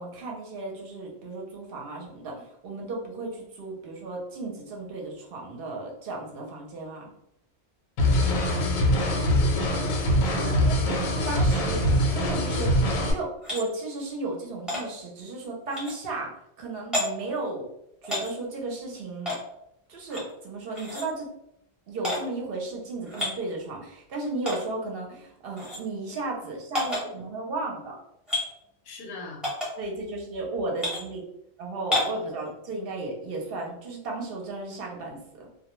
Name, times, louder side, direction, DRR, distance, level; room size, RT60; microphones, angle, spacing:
voice 1, 0.0-7.1 9.9-11.0 11.2-12.7 13.1-16.3 16.6-17.7 18.0-19.3 19.9-21.3 21.9-28.0 29.8-31.2 31.6-35.5, right 2 dB, 55° right, -1 dB, 0.7 m, -34 dB
sound 1, 8.0-13.1, left 1 dB, 80° left, 1.0 m, -23 dB
voice 2, 8.2-9.2 10.2-10.8 28.8-29.5 32.1-32.2, left 4 dB, 60° left, 0 dB, 0.7 m, -39 dB
sound 2, 13.4-13.6 14.7-14.8 15.7-16.0 16.9-17.0 18.0-18.3 19.2-19.4 20.1-20.3 20.7-21.0 22.0-22.2 23.0-23.3 24.4-24.6 25.6-25.8 26.7-27.0 28.3-28.5 29.4-29.7 30.8-31.0 31.9-32.2, left 1 dB, ahead, 0.7 m, -29 dB
2.2 x 2.2 x 2.9 m, 0.78 s
omnidirectional pair, 1.4 m